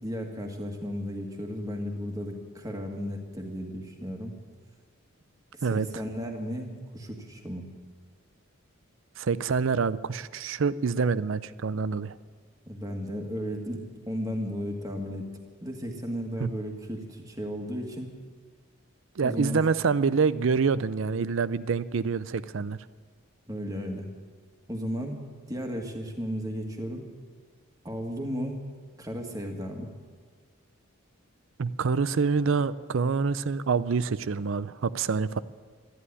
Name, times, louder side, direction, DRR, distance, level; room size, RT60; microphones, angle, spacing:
voice 1, 0.0-4.4 5.5-7.7 12.7-15.3 15.6-18.1 19.2-19.6 23.5-24.1 24.7-25.2 25.5-27.1 27.8-28.6 29.0-29.9, equal, 15° right, 3 dB, 1.7 m, -34 dB
voice 2, 9.2-12.2 16.4-16.5 19.2-22.8 31.6-35.4, right 5 dB, 65° right, 16 dB, 0.5 m, -26 dB
13.0 x 11.0 x 9.8 m, 1.6 s
head